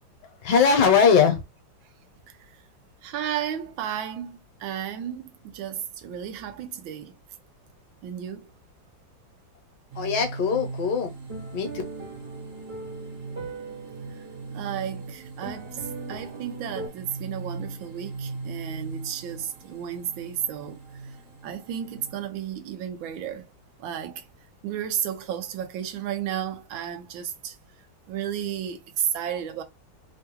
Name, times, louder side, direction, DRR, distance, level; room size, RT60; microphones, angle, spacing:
voice 1, 0.4-1.4 10.0-11.1 11.5-11.7, left 6 dB, 70° left, 1.3 m, -20 dB
voice 2, 3.0-7.1 8.0-8.5 14.5-20.8 21.4-23.5 23.8-24.2 24.6-27.5 28.1-29.6, right 9 dB, 80° right, 1.4 m, -33 dB
sound 1, 9.9-22.3, right 3 dB, 55° right, 0.9 m, -40 dB
sound 2, 11.3-16.9, right 3 dB, 25° right, 0.7 m, -40 dB
3.6 x 2.2 x 2.9 m
omnidirectional pair, 2.1 m